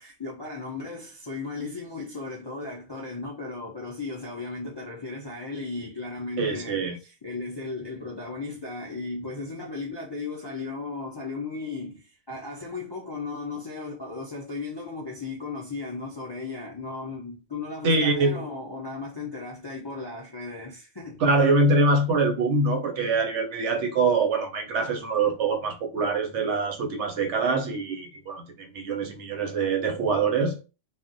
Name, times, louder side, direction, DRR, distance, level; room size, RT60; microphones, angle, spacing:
voice 1, 0.0-21.2, left 3 dB, 45° left, 0.3 m, -36 dB
voice 2, 6.4-7.0 17.8-18.4 21.2-30.6, right 3 dB, 75° right, 1.0 m, -24 dB
2.4 x 2.1 x 3.8 m
omnidirectional pair, 1.2 m